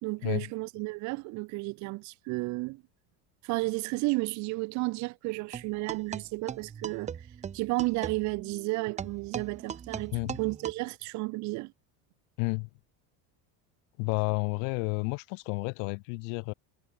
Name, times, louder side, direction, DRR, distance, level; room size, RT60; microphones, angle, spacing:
voice 1, 0.0-2.8 3.4-7.1 7.5-11.7, right 24 dB, 45° right, 0.5 m, -32 dB
sound 1, 5.5-10.7, right 7 dB, 15° right, 0.9 m, -40 dB
voice 2, 12.4-12.7 14.0-16.5, left 40 dB or more, 80° left, 1.4 m, -31 dB
cardioid pair, 170°, 39 cm